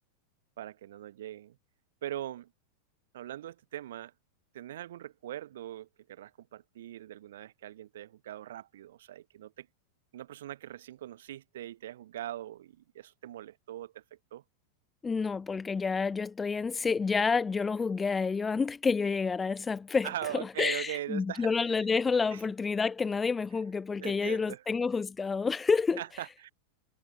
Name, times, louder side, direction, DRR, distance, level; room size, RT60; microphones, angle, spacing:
voice 1, 0.6-1.6 2.0-2.5 3.1-4.1 4.5-9.7 10.1-14.0 14.3-14.4 20.0-21.5 22.3-22.4 24.0-24.6 26.0-26.5, right 12 dB, 60° right, 1.1 m, -41 dB
voice 2, 15.0-20.1 20.3-26.0, left 5 dB, 15° left, 0.4 m, -29 dB
figure-of-eight pair, 90°, 0 cm